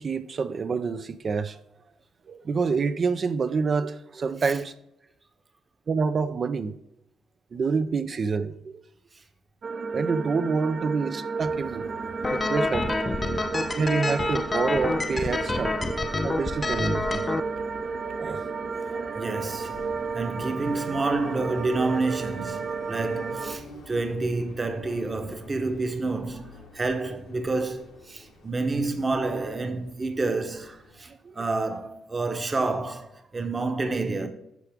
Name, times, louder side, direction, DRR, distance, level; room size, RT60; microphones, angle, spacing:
voice 1, 0.0-1.6 2.3-4.7 5.9-6.7 7.5-8.8 9.9-11.9 12.3-12.9 13.2-13.4 13.8-15.8 16.2-17.2 18.2-18.4 23.7-23.8 31.1-31.3, right 5 dB, 45° right, 0.6 m, -27 dB
sound 1, 9.6-23.5, right 4 dB, 60° right, 1.0 m, -32 dB
sound 2, 11.4-31.0, left 2 dB, 85° left, 2.4 m, -49 dB
sound 3, 12.2-17.4, left 3 dB, 25° left, 0.4 m, -28 dB
voice 2, 18.9-19.8 20.1-34.3, right 3 dB, 25° right, 1.1 m, -29 dB
12.0 x 4.8 x 3.5 m
cardioid pair, 90°, 0 cm